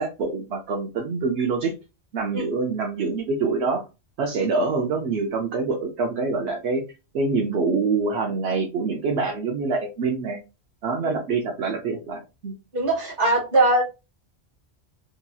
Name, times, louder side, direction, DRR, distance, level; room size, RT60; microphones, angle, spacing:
voice 1, 0.0-1.7 2.1-3.8 4.2-6.8 7.1-10.4 10.8-12.6, right 4 dB, 85° right, 0.9 m, -25 dB
voice 2, 12.7-13.8, right 2 dB, 55° right, 1.2 m, -21 dB
2.9 x 2.7 x 2.2 m
omnidirectional pair, 1.1 m